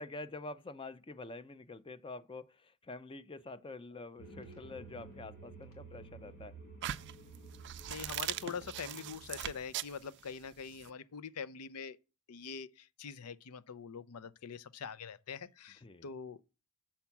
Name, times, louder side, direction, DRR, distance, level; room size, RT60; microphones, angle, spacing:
voice 1, 0.0-6.5 15.8-16.1, left 2 dB, 25° left, 0.5 m, -47 dB
sound 1, 4.2-9.4, right 3 dB, 70° left, 2.6 m, -52 dB
sound 2, 6.8-10.9, right 12 dB, 55° right, 0.4 m, -40 dB
voice 2, 7.9-12.0 12.3-16.4, left 6 dB, 85° left, 0.5 m, -44 dB
7.1 x 4.4 x 5.8 m
head